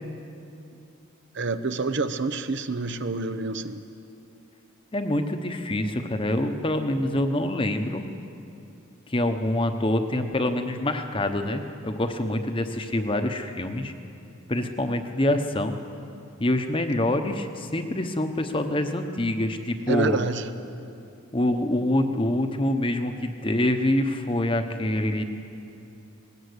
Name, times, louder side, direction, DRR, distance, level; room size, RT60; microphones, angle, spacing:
voice 1, 1.3-3.8 19.9-20.5, right 3 dB, 55° right, 10 dB, 0.8 m, -27 dB
voice 2, 4.9-8.0 9.1-13.9 14.5-15.8 16.4-20.2 21.3-25.2, left 1 dB, 25° left, 6 dB, 1.0 m, -25 dB
19.5 x 18.0 x 8.2 m, 2.7 s
head